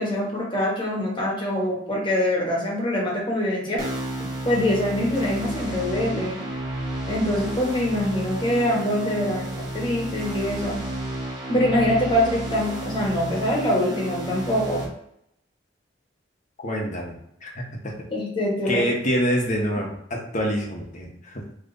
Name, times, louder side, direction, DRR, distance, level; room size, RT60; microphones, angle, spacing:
voice 1, 0.0-3.8 4.4-6.4 7.1-10.8 11.5-14.8 18.1-18.8 19.7-19.8, left 1 dB, 25° left, -4 dB, 1.4 m, -24 dB
sound 1, 3.8-14.8, right 1 dB, 50° right, 1.7 m, -32 dB
voice 2, 16.6-17.9 18.7-21.4, equal, 40° left, 0 dB, 1.1 m, -26 dB
3.7 x 3.2 x 3.9 m, 0.76 s
head